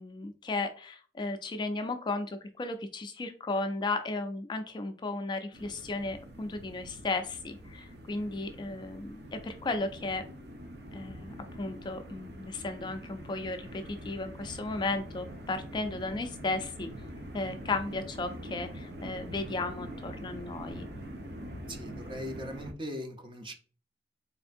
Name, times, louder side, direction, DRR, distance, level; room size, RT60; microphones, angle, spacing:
voice 1, 0.0-10.2 10.9-16.9 17.3-20.9, left 3 dB, 25° left, 8 dB, 0.3 m, -35 dB
sound 1, 5.5-22.7, equal, 65° right, 0.8 m, -44 dB
voice 2, 21.7-23.5, equal, 30° right, 5 dB, 0.7 m, -40 dB
4.2 x 3.4 x 2.5 m, 0.40 s
head